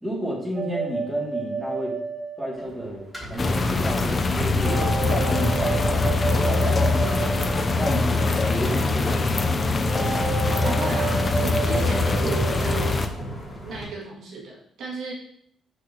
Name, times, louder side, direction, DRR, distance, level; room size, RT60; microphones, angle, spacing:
voice 1, 0.0-2.0 2.4-3.0 3.3-4.8 5.1-7.0 7.7-9.8, equal, 10° right, -4 dB, 2.5 m, -31 dB
sound 1, 0.6-3.2 4.6-8.5 9.9-13.0, right 4 dB, 40° right, 0.6 m, -31 dB
sound 2, 2.5-13.8, right 1 dB, 5° left, 2.9 m, -37 dB
sound 3, 3.4-13.1, left 3 dB, 35° left, 0.7 m, -23 dB
voice 2, 10.6-13.0 13.6-15.1, right 3 dB, 75° right, -4 dB, 2.3 m, -35 dB
6.2 x 6.1 x 3.0 m, 0.67 s
cardioid pair, 90°, 0 cm